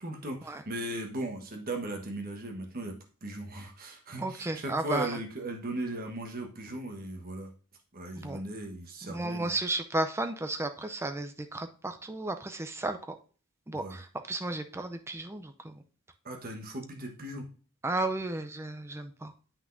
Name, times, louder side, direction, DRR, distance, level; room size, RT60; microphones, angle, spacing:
voice 1, 0.0-2.9 3.2-7.5 7.9-9.5 13.7-14.0 16.2-17.5, right 1 dB, 45° right, 3 dB, 1.3 m, -37 dB
voice 2, 4.2-5.1 8.2-8.4 9.1-13.0 13.7-15.7 17.8-19.3, right 2 dB, 10° right, 7 dB, 0.5 m, -33 dB
8.2 x 5.9 x 2.6 m, 0.38 s
head